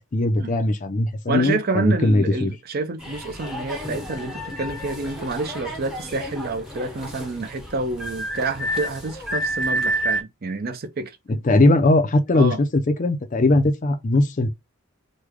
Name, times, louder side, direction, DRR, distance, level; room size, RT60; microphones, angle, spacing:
voice 1, 0.1-2.5 11.3-14.5, left 2 dB, 35° left, 0.5 m, -19 dB
voice 2, 1.3-11.2 12.3-12.6, right 3 dB, 45° right, 0.5 m, -28 dB
sound 1, 3.0-10.2, right 1 dB, 5° right, 0.7 m, -30 dB
3.1 x 2.2 x 3.5 m
head